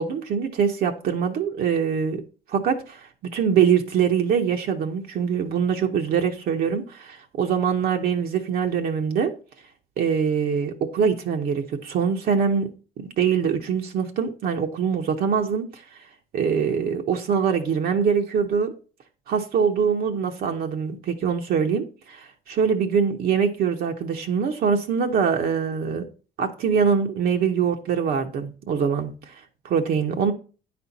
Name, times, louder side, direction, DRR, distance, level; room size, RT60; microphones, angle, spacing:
voice 1, 0.0-2.2 2.5-3.0 3.3-9.3 10.0-12.7 13.2-15.8 16.3-18.7 19.3-26.0 26.4-29.1 29.6-30.3, right 6 dB, 65° right, 0.8 m, -23 dB
9.5 x 4.3 x 4.1 m
cardioid pair, 110°, 17 cm